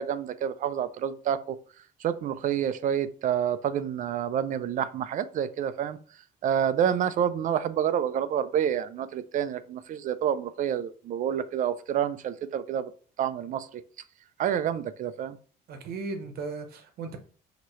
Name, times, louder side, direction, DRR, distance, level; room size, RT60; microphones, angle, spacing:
voice 1, 0.0-1.6 2.0-6.0 6.4-12.9 13.2-13.8 14.4-15.4, right 9 dB, 50° right, 0.4 m, -28 dB
voice 2, 15.7-17.2, right 4 dB, 65° right, 0.9 m, -36 dB
5.8 x 2.9 x 3.1 m
cardioid pair, 110°, 17 cm